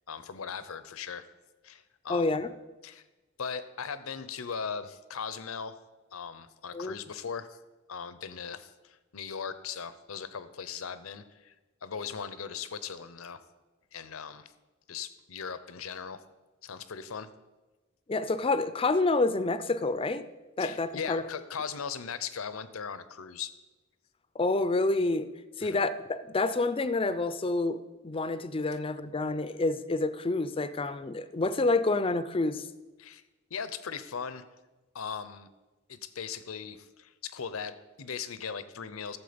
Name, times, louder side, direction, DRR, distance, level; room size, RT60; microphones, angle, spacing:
voice 1, 0.1-1.3 1.6-2.3 2.8-3.0 3.4-5.8 6.1-7.6 7.9-11.5 11.8-13.4 13.9-14.5 14.9-16.2 16.6-17.3 20.6-23.5 25.6-25.8 33.0-33.2 33.5-34.4 34.9-35.5 35.9-39.2, left 6 dB, 80° left, 13 dB, 0.7 m, -39 dB
voice 2, 2.1-2.5 6.7-6.9 18.1-20.3 20.6-21.2 24.3-25.3 25.6-32.7, left 3 dB, 25° left, 13 dB, 0.5 m, -28 dB
13.5 x 7.3 x 5.1 m, 1.2 s
head